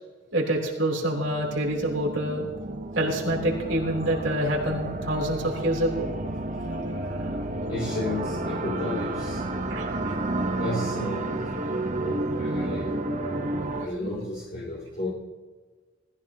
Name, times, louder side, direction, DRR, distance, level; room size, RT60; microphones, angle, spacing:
voice 1, 0.3-2.5 2.9-6.0 7.0-7.3 9.7-10.1 13.7-14.1, right 1 dB, 65° right, -1 dB, 3.4 m, -27 dB
sound 1, 1.1-13.9, right 2 dB, 35° right, 0.9 m, -31 dB
voice 2, 7.7-9.4 10.6-11.5 12.0-12.9 13.8-15.1, left 1 dB, 40° left, -6 dB, 2.8 m, -33 dB
20.0 x 14.5 x 2.9 m, 1.4 s
head